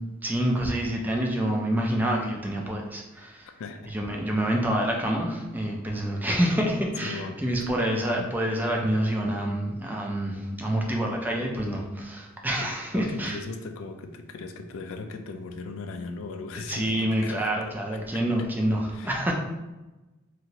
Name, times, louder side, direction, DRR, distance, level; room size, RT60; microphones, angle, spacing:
voice 1, 0.2-3.5 3.9-13.4 16.6-19.3, right 1 dB, 10° right, -1 dB, 0.3 m, -27 dB
voice 2, 3.6-3.9 7.0-7.4 12.6-12.7 12.9-17.5 17.9-18.2 18.9-19.3, left 3 dB, 75° left, 7 dB, 0.3 m, -38 dB
2.9 x 2.6 x 2.8 m, 1.1 s
head